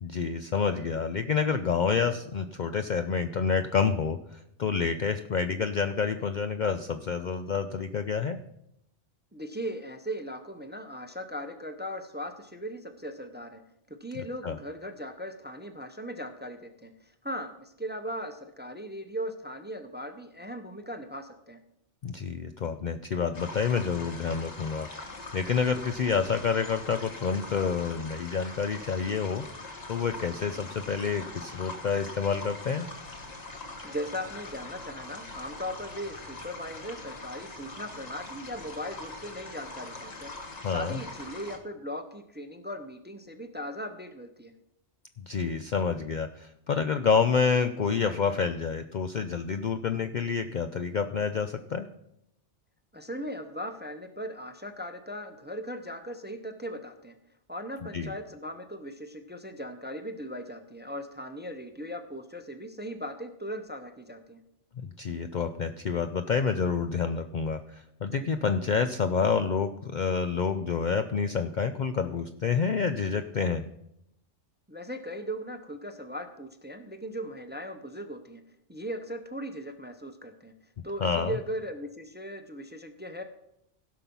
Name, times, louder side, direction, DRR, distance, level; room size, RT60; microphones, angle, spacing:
voice 1, 0.0-8.4 14.4-14.6 22.0-29.5 29.9-32.9 40.6-41.0 45.2-51.9 57.9-58.1 64.8-73.7 81.0-81.3, left 6 dB, 55° left, 8 dB, 0.5 m, -28 dB
voice 2, 9.3-13.6 13.9-21.6 33.8-44.5 52.9-57.1 57.5-64.4 74.7-78.4 78.7-80.5 80.8-83.2, equal, 10° right, 8 dB, 0.6 m, -38 dB
sound 1, 23.3-41.6, left 2 dB, 35° left, 1.3 m, -43 dB
16.0 x 5.9 x 5.4 m, 0.79 s
omnidirectional pair, 1.2 m